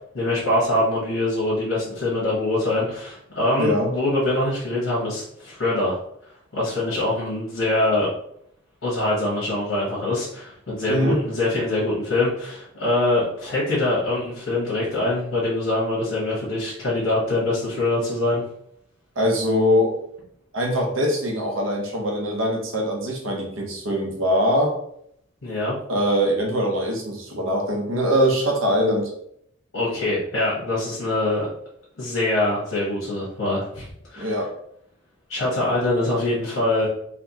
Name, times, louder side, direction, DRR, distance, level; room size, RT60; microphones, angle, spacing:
voice 1, 0.1-6.0 6.5-8.1 8.8-18.4 25.4-25.8 29.7-31.5 32.0-33.9 34.1-34.4 35.3-36.9, left 2 dB, 75° left, -6 dB, 1.2 m, -24 dB
voice 2, 3.6-3.9 10.9-11.2 19.2-19.9 20.5-24.8 25.9-29.1 34.2-34.5, equal, 85° right, 1 dB, 1.0 m, -22 dB
4.2 x 2.4 x 2.9 m, 0.71 s
head